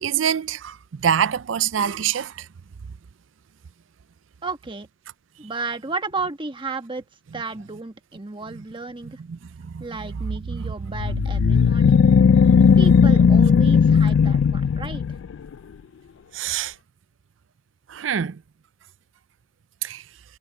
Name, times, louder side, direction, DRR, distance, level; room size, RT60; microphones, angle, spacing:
voice 1, 0.0-2.3 9.1-9.4 9.7-10.1 10.5-10.7 11.1-11.7 16.3-16.7 17.9-18.4 19.8-20.0, right 8 dB, 90° right, 0.5 m, -26 dB
voice 2, 4.4-4.9 5.4-7.0 7.3-9.2 9.8-12.1 12.8-15.0, right 3 dB, 25° right, 1.4 m, -33 dB
sound 1, 10.9-15.3, left 6 dB, 85° left, 0.3 m, -16 dB
head